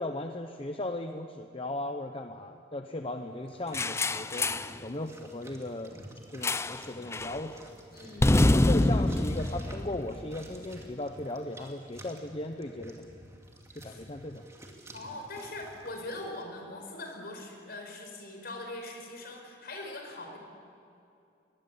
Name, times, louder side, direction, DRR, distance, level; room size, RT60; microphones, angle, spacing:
voice 1, 0.0-4.5 4.8-6.0 6.3-7.6 8.5-13.2 13.7-14.5, left 1 dB, 30° left, 5 dB, 0.9 m, -37 dB
sound 1, 3.4-16.4, right 1 dB, 15° right, 2.7 m, -51 dB
sound 2, 3.7-4.8 6.4-6.9 7.1-7.4 8.2-10.5, left 1 dB, 15° left, 0.5 m, -26 dB
voice 2, 7.9-8.3 13.7-14.1 14.9-20.4, left 2 dB, 55° left, 2 dB, 5.1 m, -41 dB
24.0 x 20.5 x 8.5 m, 2.6 s
head